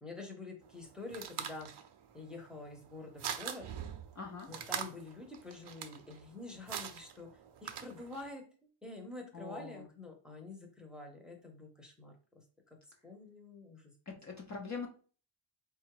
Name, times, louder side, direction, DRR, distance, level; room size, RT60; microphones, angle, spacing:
voice 1, 0.0-1.7 2.1-3.7 4.5-7.3 7.6-12.4 13.0-13.9, left 2 dB, ahead, 2 dB, 0.7 m, -47 dB
sound 1, 0.6-8.3, right 8 dB, 55° right, 0.5 m, -44 dB
voice 2, 4.1-4.5 9.3-9.9 14.1-14.9, left 4 dB, 35° left, 0 dB, 0.6 m, -43 dB
4.0 x 2.4 x 4.7 m, 0.40 s
wide cardioid pair, 155°, 50 cm